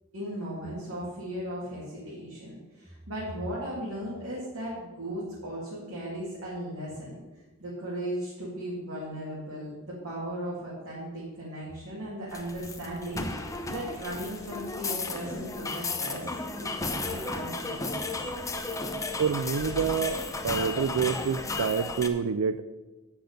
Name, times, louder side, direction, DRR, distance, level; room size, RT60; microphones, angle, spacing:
voice 1, 0.1-7.2 7.6-16.3 16.6-18.1, equal, 75° right, -7 dB, 2.5 m, -37 dB
sound 1, 12.3-22.1, left 3 dB, 15° left, 0.7 m, -34 dB
voice 2, 19.2-20.2 20.4-22.6, right 6 dB, 90° right, 13 dB, 0.4 m, -27 dB
8.4 x 6.0 x 6.6 m, 1.2 s
head